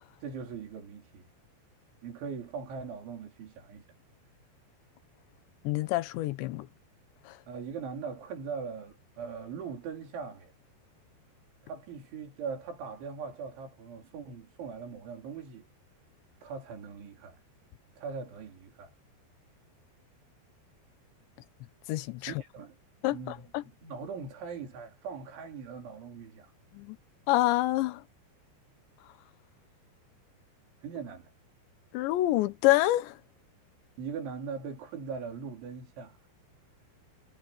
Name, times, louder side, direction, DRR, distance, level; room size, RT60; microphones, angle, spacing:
voice 1, 0.2-1.3 2.0-3.9 7.5-10.5 11.6-15.6 16.4-17.4 18.0-18.9 22.2-22.8 23.1-26.5 30.8-31.3 34.0-36.2, right 5 dB, 85° right, 6.3 m, -40 dB
voice 2, 5.6-6.7 21.9-22.3 23.0-23.6 26.7-27.0 27.3-28.0 31.9-33.1, left 16 dB, 80° left, 3.3 m, -27 dB
omnidirectional pair, 5.3 m